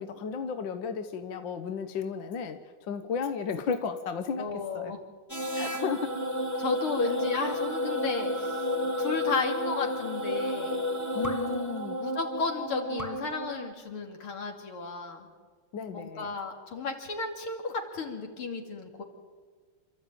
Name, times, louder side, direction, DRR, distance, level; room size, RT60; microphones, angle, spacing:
voice 1, 0.0-4.9 5.5-6.2 11.1-12.0 15.7-16.3, left 5 dB, 65° left, 8 dB, 1.6 m, -34 dB
voice 2, 4.4-5.0 6.6-8.7 9.0-10.8 12.0-15.3 15.9-19.0, left 4 dB, 80° left, 3 dB, 3.4 m, -33 dB
sound 1, 5.3-13.7, left 1 dB, 10° left, 1.0 m, -32 dB
28.0 x 13.5 x 9.1 m, 1.5 s
omnidirectional pair, 2.3 m